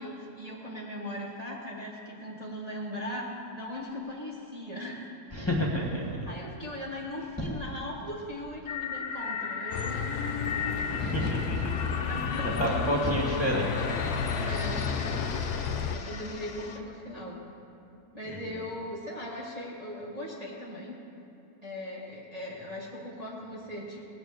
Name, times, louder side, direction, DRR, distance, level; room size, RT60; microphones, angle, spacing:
voice 1, 0.0-5.1 6.3-11.3 12.1-13.4 14.4-14.8 15.9-17.4 18.1-21.0 21.6-24.1, left 1 dB, 25° right, -5 dB, 1.6 m, -39 dB
voice 2, 5.3-6.3 7.4-7.5 10.9-11.9 12.4-14.4 18.2-18.6, equal, 15° left, -3 dB, 1.7 m, -30 dB
sound 1, 8.7-16.8, left 6 dB, 50° left, 0.9 m, -36 dB
Bus, 9.7-16.0, left 6 dB, 75° left, 1.2 m, -32 dB
18.5 x 6.8 x 7.9 m, 2.9 s
omnidirectional pair, 1.8 m